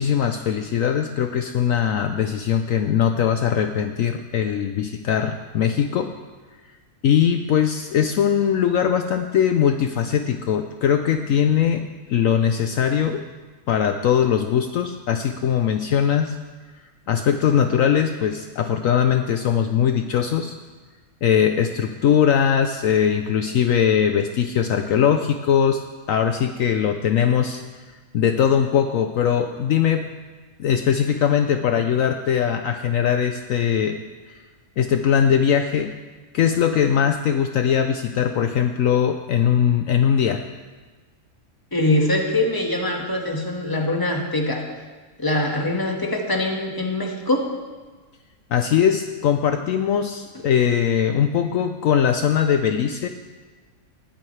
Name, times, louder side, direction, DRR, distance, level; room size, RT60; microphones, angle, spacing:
voice 1, 0.0-6.1 7.0-13.2 13.7-16.4 17.1-20.6 21.2-25.8 26.1-30.1 30.6-34.0 34.3-34.4 34.8-35.9 36.3-40.4 48.5-53.1, left 8 dB, 70° left, 7 dB, 1.0 m, -20 dB
voice 2, 41.7-44.6 45.2-47.4, left 1 dB, 15° left, 1 dB, 1.6 m, -23 dB
19.5 x 14.0 x 3.3 m, 1.4 s
omnidirectional pair, 1.6 m